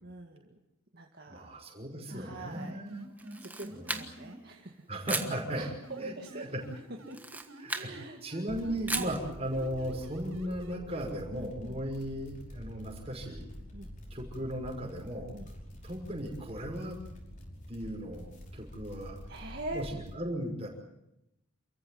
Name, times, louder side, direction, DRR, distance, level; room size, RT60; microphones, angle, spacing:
voice 1, 0.0-0.6 0.9-1.5 2.1-2.8 3.4-4.7 5.1-5.2 5.6-6.5 7.1-7.2 7.7-8.2 8.9-9.2 11.3-11.8 13.7-13.9 15.3-15.5 19.3-19.8, right 2 dB, 45° right, 1 dB, 2.1 m, -43 dB
voice 2, 1.3-3.0 3.7-4.0 4.9-5.7 6.0-6.5 7.6-7.9 8.2-13.5 14.1-15.3 15.8-17.0 17.7-19.2 19.7-20.7, right 1 dB, 30° right, 1 dB, 5.9 m, -37 dB
sound 1, 2.1-4.4 5.1-7.2 7.5-11.1, right 1 dB, 85° right, 5.2 m, -47 dB
Camera, 3.2-4.4 5.1-5.4 7.1-7.9 8.9-9.2, right 3 dB, 10° right, 1.4 m, -35 dB
sound 2, 8.5-20.1, equal, 35° left, 5.4 m, -47 dB
28.5 x 15.0 x 9.5 m, 0.85 s
head